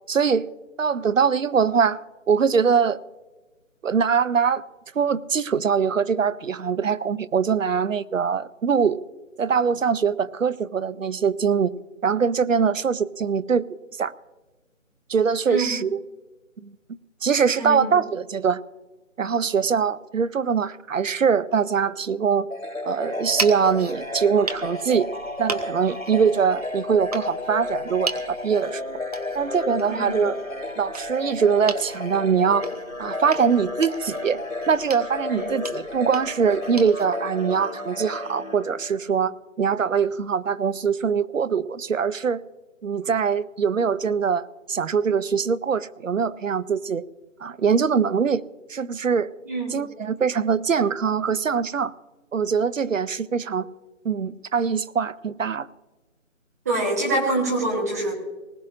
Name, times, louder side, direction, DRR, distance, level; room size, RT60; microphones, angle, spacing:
voice 1, 0.1-0.5 0.8-2.0 2.3-3.0 3.8-4.6 4.9-9.0 9.4-11.7 12.0-13.6 14.0-14.1 15.1-16.0 16.6-16.7 17.2-18.6 19.2-22.5 22.8-25.1 25.4-28.8 29.3-30.4 30.8-32.7 33.0-34.4 34.7-42.4 42.8-47.0 47.4-48.4 48.7-49.3 49.7-51.9 52.3-53.7 54.0-55.7, right 6 dB, 70° right, 17 dB, 0.7 m, -22 dB
voice 2, 15.5-15.8 17.6-17.9 29.9-30.2 35.3-35.5 49.5-49.8 56.6-58.1, right 2 dB, 10° right, -3 dB, 1.1 m, -25 dB
sound 1, 22.5-39.3, left 2 dB, 75° left, 3.3 m, -32 dB
sound 2, 23.2-37.1, right 3 dB, 30° right, 0.9 m, -38 dB
20.0 x 18.0 x 2.6 m, 1.2 s
figure-of-eight pair, 160°, 40 cm